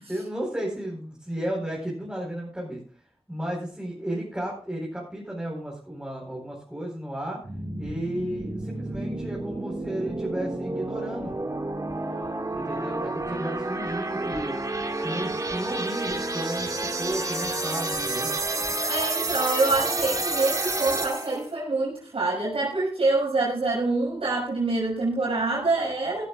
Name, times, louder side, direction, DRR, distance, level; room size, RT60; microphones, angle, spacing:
voice 1, 0.1-2.8 3.3-7.4 7.8-11.4 12.5-14.6 15.0-18.3, right 1 dB, 10° right, -3 dB, 4.4 m, -33 dB
sound 1, 7.4-21.4, right 2 dB, 35° right, 1.9 m, -30 dB
voice 2, 18.9-26.2, right 3 dB, 70° right, -5 dB, 5.6 m, -26 dB
15.5 x 14.5 x 2.4 m, 0.42 s
wide cardioid pair, 90°, 10 cm